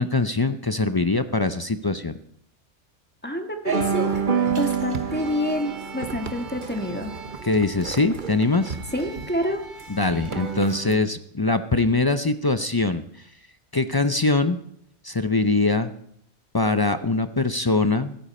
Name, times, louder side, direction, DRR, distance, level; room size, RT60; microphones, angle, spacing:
voice 1, 0.0-2.2 7.4-8.8 9.9-13.0 13.7-14.6 15.0-15.9 16.5-18.2, left 3 dB, 35° left, 10 dB, 0.4 m, -22 dB
voice 2, 3.2-4.1 4.6-7.1 8.9-9.6, equal, 10° left, 4 dB, 1.5 m, -27 dB
sound 1, 3.7-11.0, right 6 dB, 45° right, 1.2 m, -29 dB
16.0 x 13.5 x 4.3 m, 0.70 s
omnidirectional pair, 1.2 m